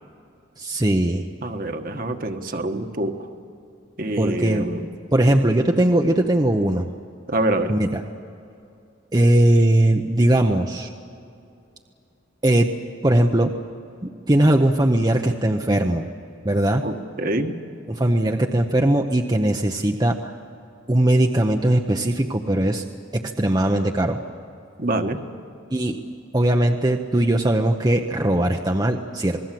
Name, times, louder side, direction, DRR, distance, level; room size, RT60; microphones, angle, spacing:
voice 1, 0.6-1.3 4.2-4.7 5.1-6.9 7.7-8.0 9.1-10.9 12.4-12.7 13.0-13.5 14.0-16.1 16.4-16.9 17.9-20.3 20.9-22.8 23.1-24.2 25.7-26.0 26.3-29.4, right 1 dB, 20° right, 3 dB, 0.8 m, -19 dB
voice 2, 1.4-3.2 4.0-4.9 7.3-7.7 16.8-17.6 24.8-25.2, right 1 dB, 45° right, 6 dB, 1.4 m, -25 dB
27.5 x 20.5 x 7.7 m, 2.6 s
head